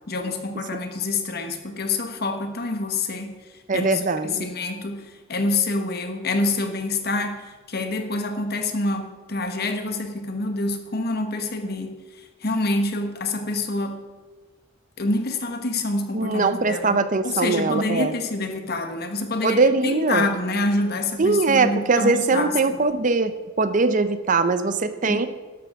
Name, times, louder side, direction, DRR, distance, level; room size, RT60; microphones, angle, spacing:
voice 1, 0.1-3.4 3.7-14.0 15.0-17.0 17.2-22.8 25.1-25.2, left 2 dB, 50° left, 6 dB, 1.3 m, -27 dB
voice 2, 3.7-4.5 16.1-18.1 19.4-20.3 21.2-23.3 23.6-25.3, right 3 dB, 40° right, 12 dB, 0.6 m, -21 dB
13.0 x 11.0 x 3.6 m, 1.4 s
head